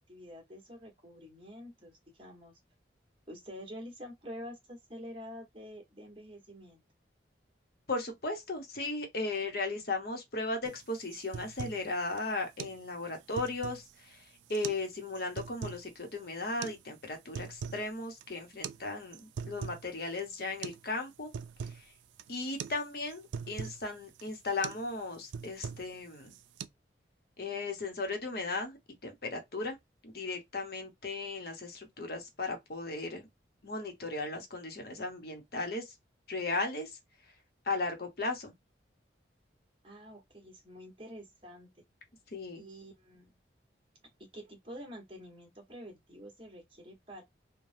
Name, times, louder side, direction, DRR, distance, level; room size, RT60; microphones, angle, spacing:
voice 1, 0.1-2.6 3.3-6.8 39.8-41.7 42.5-43.3 44.2-47.2, equal, 30° right, 1.3 m, -47 dB
voice 2, 7.9-21.3 21.6-21.8 22.3-26.4 27.4-28.8 29.0-29.8 30.0-33.3 33.6-35.9 36.3-37.0 37.6-38.5 42.3-42.7, left 3 dB, 55° left, 0.9 m, -36 dB
sound 1, 10.6-10.8 11.1-11.8 12.2-12.3 12.6-12.8 13.1-13.9 14.5-14.9 15.1-15.8 16.6-16.8 17.1-17.9 18.1-18.2 18.6-18.8 19.1-19.9 20.2-20.3 20.6-20.8 21.1-21.8 22.2-22.3 22.6-22.8 23.1-23.8 24.2-24.3 24.6-24.9 25.1-25.9 26.3-26.6, right 6 dB, 80° right, 0.3 m, -41 dB
3.3 x 2.2 x 2.6 m
head